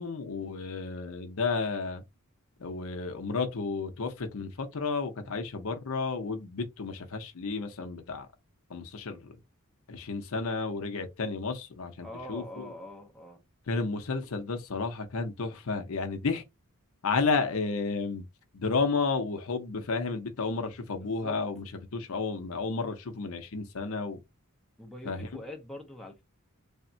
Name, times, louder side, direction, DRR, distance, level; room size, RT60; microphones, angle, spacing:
voice 1, 0.0-2.0 2.6-8.3 8.7-9.3 9.9-12.7 13.7-16.4 17.0-18.2 18.5-21.7 21.9-24.2 25.0-25.3, left 4 dB, 70° left, 0.6 m, -32 dB
voice 2, 12.0-13.4 21.0-21.4 24.8-26.2, left 1 dB, ahead, 0.6 m, -43 dB
3.4 x 2.1 x 2.6 m
head